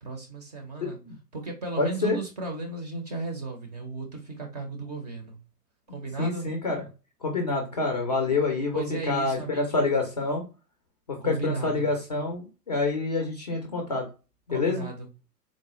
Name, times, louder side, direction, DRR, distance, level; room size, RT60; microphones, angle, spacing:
voice 1, 0.0-1.0 1.3-5.4 5.9-6.5 8.7-9.8 11.2-11.9 14.5-15.1, right 3 dB, 25° right, 0.5 m, -35 dB
voice 2, 0.8-1.1 1.8-2.2 6.2-6.8 7.2-10.4 11.1-14.1 14.5-14.9, left 3 dB, 30° left, 0.4 m, -27 dB
3.8 x 2.1 x 2.9 m
figure-of-eight pair, 120°, 48 cm